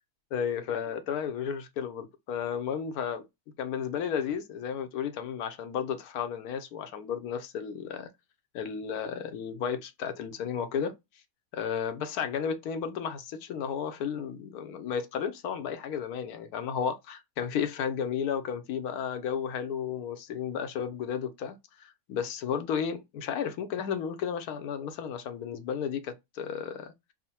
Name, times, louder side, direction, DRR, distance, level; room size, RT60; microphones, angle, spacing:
voice 1, 0.3-3.3 3.6-8.1 8.5-10.9 11.5-27.1, left 7 dB, 85° left, 1.1 m, -33 dB
3.7 x 2.1 x 4.1 m
omnidirectional pair, 1.5 m